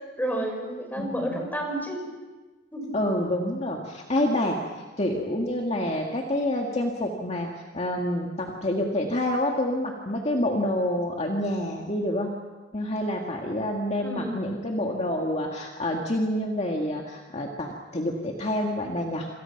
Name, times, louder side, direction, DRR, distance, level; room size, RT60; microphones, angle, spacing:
voice 1, 0.2-2.0 2.7-2.9 14.0-14.6, right 1 dB, 10° left, 2 dB, 5.5 m, -31 dB
voice 2, 1.0-1.4 2.9-4.6 5.0-7.5 7.7-12.3 12.7-19.3, left 1 dB, 35° left, 1 dB, 2.1 m, -27 dB
27.5 x 27.0 x 6.0 m, 1.3 s
head